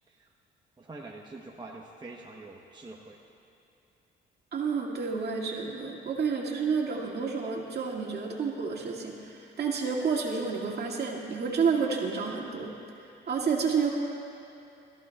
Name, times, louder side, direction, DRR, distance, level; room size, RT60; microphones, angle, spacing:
voice 1, 0.8-3.2, right 2 dB, 20° right, -1 dB, 1.0 m, -45 dB
voice 2, 4.5-12.7 13.3-13.9, right 5 dB, 55° right, -2 dB, 2.2 m, -30 dB
21.0 x 14.0 x 2.4 m, 2.7 s
cardioid pair, 90°, 20 cm